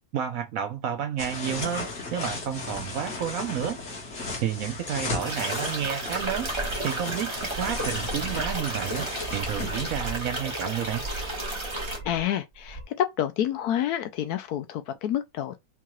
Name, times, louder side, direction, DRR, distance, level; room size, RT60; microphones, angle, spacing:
voice 1, 0.1-3.8 4.4-6.5 6.8-9.1 9.3-11.0, right 9 dB, 70° right, 0.9 m, -31 dB
sound 1, 1.2-9.9, left 3 dB, 45° left, 1.5 m, -36 dB
sound 2, 5.2-12.0, right 2 dB, 20° right, 1.0 m, -33 dB
sound 3, 6.1-7.0 7.3-8.7 9.2-10.4 10.8-12.2 12.5-12.8, right 1 dB, 20° left, 0.8 m, -38 dB
voice 2, 12.1-15.6, left 10 dB, 70° left, 1.0 m, -28 dB
4.6 x 2.4 x 3.0 m
omnidirectional pair, 1.8 m